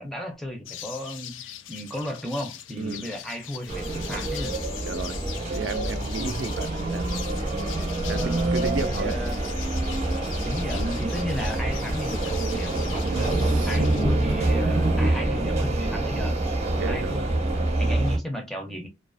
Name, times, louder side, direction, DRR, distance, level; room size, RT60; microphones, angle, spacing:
voice 1, 0.0-4.5 8.1-9.8 10.4-13.3 13.6-16.4 16.7-18.9, equal, ahead, 0.4 m, -34 dB
sound 1, 0.7-14.0, left 10 dB, 85° left, 0.4 m, -41 dB
voice 2, 2.7-3.1 4.8-5.2 5.5-7.1 8.1-9.1 13.1-13.7 16.7-17.3, right 4 dB, 70° right, 0.4 m, -33 dB
sound 2, 3.7-18.2, right 2 dB, 35° right, 0.7 m, -26 dB
2.3 x 2.3 x 2.4 m
head